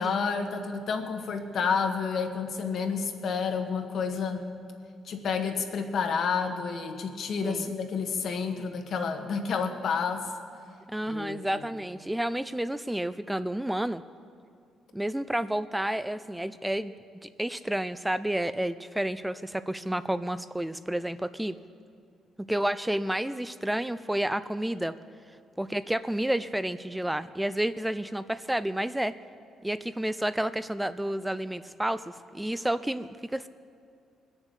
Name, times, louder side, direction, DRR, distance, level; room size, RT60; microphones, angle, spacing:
voice 1, 0.0-4.5 5.0-10.3 11.1-11.4, left 5 dB, 60° left, 6 dB, 1.6 m, -30 dB
voice 2, 10.9-14.0 14.9-16.9 17.2-21.6 22.5-24.9 25.6-29.1 29.6-33.5, right 1 dB, 5° right, 13 dB, 0.4 m, -30 dB
21.0 x 7.1 x 8.2 m, 2.4 s
cardioid pair, 90°, 0 cm